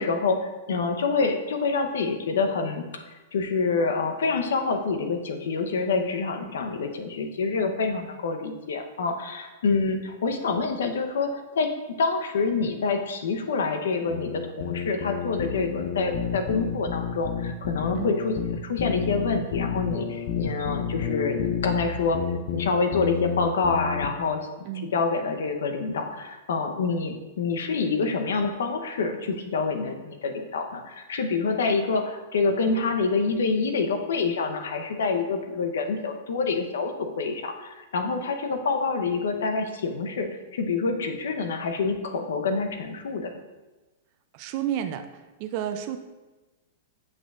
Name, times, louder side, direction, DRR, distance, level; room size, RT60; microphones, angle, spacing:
voice 1, 0.0-2.8 3.3-11.7 12.0-22.2 22.5-24.4 24.9-43.3, left 4 dB, 85° left, 6 dB, 0.7 m, -27 dB
sound 1, 14.1-24.1, left 7 dB, 50° left, 0.5 m, -30 dB
voice 2, 44.3-45.1 45.4-46.0, right 10 dB, 45° right, 7 dB, 0.4 m, -30 dB
7.4 x 6.2 x 2.4 m, 1.2 s
hypercardioid pair, 140°, 0 cm